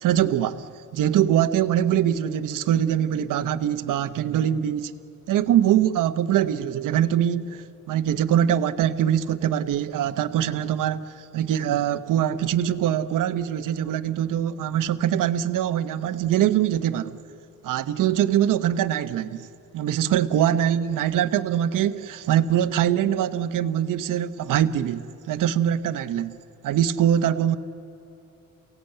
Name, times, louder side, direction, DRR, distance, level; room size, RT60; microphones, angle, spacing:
voice 1, 0.0-4.9 5.3-17.2 17.6-19.5 19.7-26.4 26.6-27.6, right 10 dB, 75° right, 1.0 m, -23 dB
29.0 x 17.5 x 9.0 m
cardioid pair, 115°, 32 cm